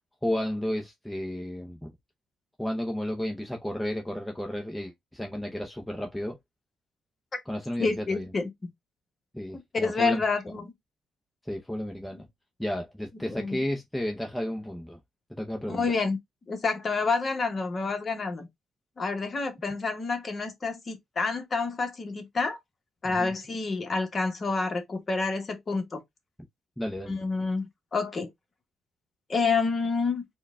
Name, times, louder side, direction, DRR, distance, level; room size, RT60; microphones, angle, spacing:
voice 1, 0.2-1.9 2.6-6.4 7.5-8.3 9.3-10.2 11.5-12.3 12.6-15.0 15.3-15.9 23.0-23.3 26.8-27.2, left 1 dB, 5° left, 0.6 m, -32 dB
voice 2, 7.8-8.5 9.7-10.7 13.3-13.6 15.7-16.2 16.5-18.5 19.0-22.6 23.0-26.0 27.1-28.3 29.3-30.3, left 4 dB, 35° left, 1.0 m, -28 dB
4.4 x 2.2 x 3.5 m
cardioid pair, 125°, 0 cm